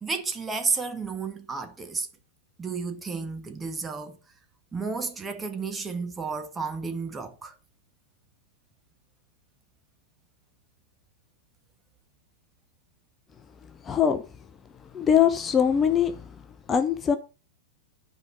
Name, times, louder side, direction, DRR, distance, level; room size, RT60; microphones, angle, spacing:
voice 1, 0.0-2.1 2.6-4.2 4.7-7.5, right 4 dB, 15° right, 1.5 m, -32 dB
voice 2, 13.8-14.2 14.9-16.3 16.7-17.2, left 8 dB, 25° left, 0.9 m, -22 dB
10.5 x 5.3 x 6.2 m
hypercardioid pair, 105°, 0 cm